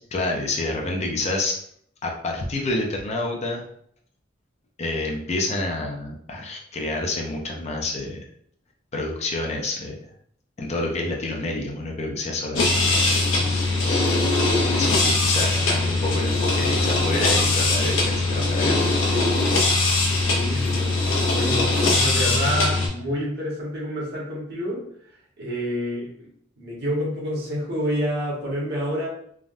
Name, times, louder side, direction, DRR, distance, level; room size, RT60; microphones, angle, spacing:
voice 1, 0.1-1.6 2.0-3.6 4.8-8.2 8.9-10.0 10.6-13.0 13.4-13.8 14.7-18.8, left 2 dB, 35° left, 1 dB, 0.5 m, -28 dB
sound 1, 12.6-22.9, left 2 dB, 75° left, 0.7 m, -21 dB
voice 2, 20.1-21.1 21.3-24.8 25.4-26.3 26.6-29.1, equal, 60° right, -4 dB, 1.1 m, -28 dB
3.3 x 2.1 x 2.5 m, 0.66 s
head